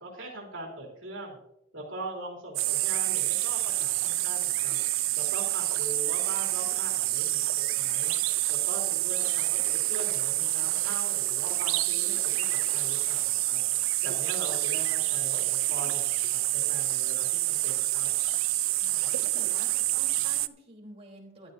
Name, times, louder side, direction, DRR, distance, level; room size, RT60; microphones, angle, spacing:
voice 1, 0.0-1.4 1.7-4.8 5.2-8.1 8.5-13.6 14.0-18.1, right 1 dB, 70° right, -2 dB, 3.4 m, -41 dB
sound 1, 2.6-20.5, right 17 dB, 90° right, 0.5 m, -27 dB
voice 2, 18.8-21.5, right 1 dB, 30° right, -3 dB, 3.6 m, -49 dB
15.5 x 12.0 x 2.7 m, 0.83 s
head